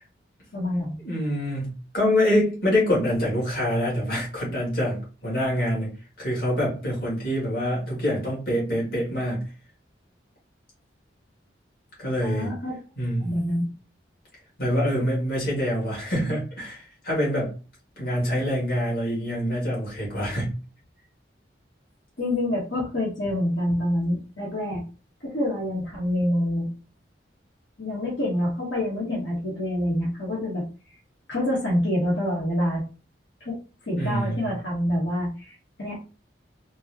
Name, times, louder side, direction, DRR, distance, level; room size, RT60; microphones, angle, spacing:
voice 1, 0.5-1.0 12.2-12.7 13.2-13.7 22.2-24.8 25.2-26.7 27.8-30.6 31.3-32.8 33.4-36.0, left 1 dB, 75° left, -5 dB, 1.3 m, -27 dB
voice 2, 1.0-1.7 1.9-5.9 6.2-9.4 12.0-12.5 13.0-13.3 14.6-17.5 18.0-20.5 34.0-34.5, equal, 50° left, -5 dB, 2.0 m, -25 dB
4.3 x 2.2 x 2.9 m, 0.34 s
head